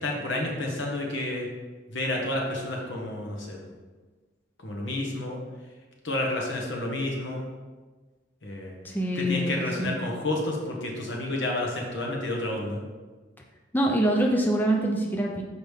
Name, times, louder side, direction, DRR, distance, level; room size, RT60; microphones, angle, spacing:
voice 1, 0.0-1.5 1.9-3.6 4.6-5.4 6.0-7.5 8.4-8.7 9.1-12.8, left 1 dB, 70° left, 0 dB, 1.3 m, -30 dB
voice 2, 8.8-10.0 13.7-15.4, right 1 dB, 10° left, 0 dB, 0.5 m, -25 dB
6.4 x 5.0 x 3.5 m, 1.3 s
head